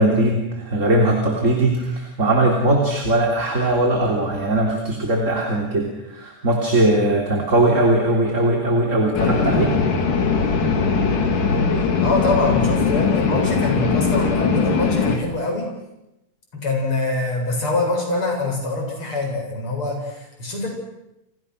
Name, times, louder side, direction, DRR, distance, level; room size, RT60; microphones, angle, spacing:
voice 1, 0.0-9.8, right 1 dB, 25° right, 1 dB, 3.4 m, -19 dB
sound 1, 9.1-15.2, left 5 dB, 90° left, 4.6 m, -20 dB
voice 2, 12.0-15.7 16.5-20.7, left 2 dB, 40° left, 1 dB, 8.6 m, -24 dB
30.0 x 29.0 x 6.5 m, 0.89 s
omnidirectional pair, 3.6 m